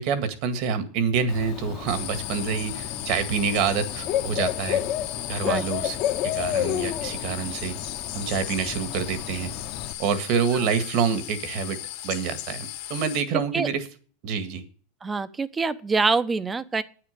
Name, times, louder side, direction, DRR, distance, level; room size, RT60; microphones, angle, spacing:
voice 1, 0.0-4.9 5.3-6.0 6.2-7.8 8.1-9.5 10.0-11.8 12.0-13.9 14.2-14.6, right 6 dB, 55° right, 10 dB, 1.8 m, -27 dB
Bird / Cricket, 1.3-9.9, left 11 dB, 45° left, 1.1 m, -31 dB
sound 1, 1.9-13.2, left 14 dB, 65° left, 1.9 m, -36 dB
voice 2, 15.0-16.8, right 4 dB, 15° right, 13 dB, 0.8 m, -25 dB
9.4 x 8.6 x 6.7 m, 0.41 s
supercardioid pair, 135°, 0 cm